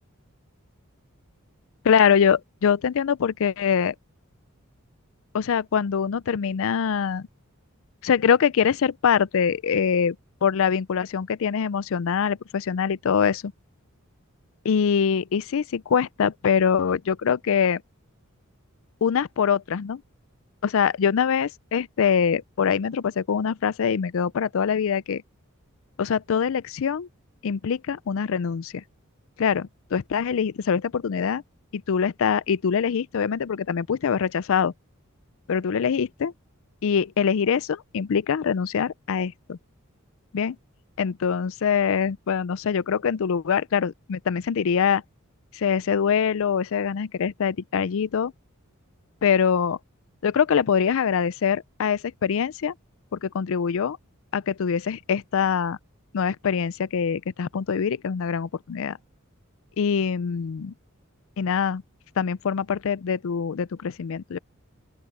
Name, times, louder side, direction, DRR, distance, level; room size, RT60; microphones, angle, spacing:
voice 1, 1.8-3.9 5.3-7.3 8.0-13.5 14.6-17.8 19.0-20.0 20.6-25.2 26.0-27.1 27.4-28.8 29.4-31.4 31.7-34.7 35.5-36.3 36.8-39.6 40.3-40.6 41.0-45.0 45.5-48.3 49.2-49.8 50.2-52.7 53.1-54.0 54.3-55.8 56.1-59.0 59.8-60.7 61.4-61.8 62.2-64.4, left 7 dB, 65° left, 0.4 m, -24 dB
open air
head